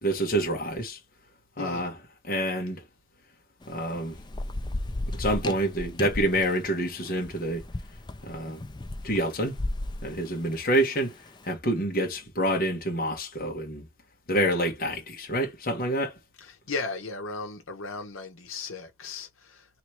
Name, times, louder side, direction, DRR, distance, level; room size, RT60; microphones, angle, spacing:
voice 1, 0.0-1.0 1.6-1.9 2.3-2.8 3.7-4.2 5.2-7.6 8.2-8.6 9.0-9.5 10.0-11.1 11.5-13.9 14.3-16.2, right 1 dB, 45° left, 1.3 m, -27 dB
voice 2, 1.6-1.9 16.4-19.7, left 4 dB, 75° left, 1.1 m, -36 dB
Thunder / Rain, 3.6-11.3, left 1 dB, 20° left, 0.5 m, -35 dB
3.1 x 3.1 x 4.4 m
head